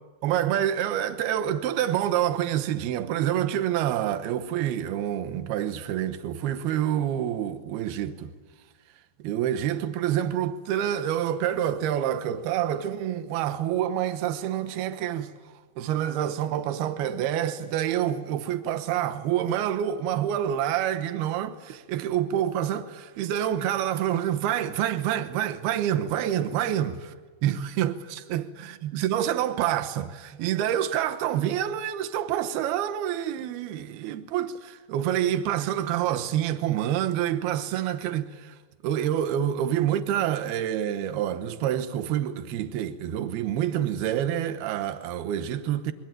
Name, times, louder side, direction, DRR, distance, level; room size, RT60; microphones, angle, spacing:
voice 1, 0.2-8.3 9.2-15.3 15.8-27.1 27.4-38.6 38.8-45.9, right 11 dB, 85° right, 2.2 m, -27 dB
26.5 x 22.0 x 9.1 m
omnidirectional pair, 5.8 m